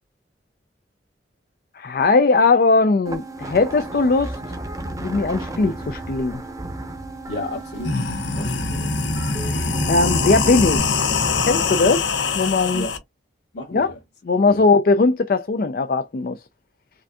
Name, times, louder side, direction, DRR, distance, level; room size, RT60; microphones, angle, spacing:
voice 1, 1.8-4.4 5.0-6.4 9.4-11.0 11.4-12.1 12.4-12.9 13.7-13.9 14.2-16.4, left 3 dB, 50° left, 0.4 m, -19 dB
sound 1, 3.1-10.8, right 2 dB, 20° right, 0.7 m, -33 dB
sound 2, 7.3-7.4 7.7-13.0, left 4 dB, 90° left, 0.8 m, -23 dB
voice 2, 7.3-8.0 8.3-9.0 12.2-12.3 12.7-13.0 13.5-14.0 14.4-14.6, left 1 dB, 65° left, 1.9 m, -33 dB
4.9 x 2.6 x 2.2 m
head